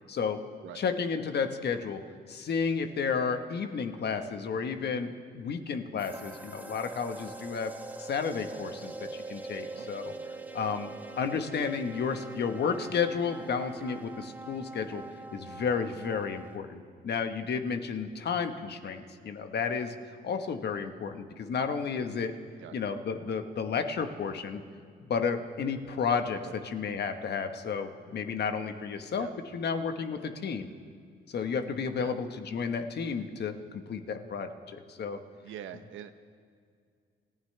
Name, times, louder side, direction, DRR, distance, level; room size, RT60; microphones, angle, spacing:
voice 1, 0.1-0.4 0.7-2.0 2.3-7.7 8.0-10.1 10.5-15.0 15.3-19.9 20.2-22.3 22.7-24.6 25.0-29.3 29.5-30.7 31.3-35.2, left 6 dB, 55° left, 7 dB, 1.3 m, -32 dB
sound 1, 6.0-16.6, right 3 dB, 10° right, 0.9 m, -43 dB
voice 2, 35.4-36.1, right 11 dB, 80° right, 10 dB, 0.9 m, -44 dB
28.5 x 15.0 x 3.4 m, 2.2 s
cardioid pair, 90°, 20 cm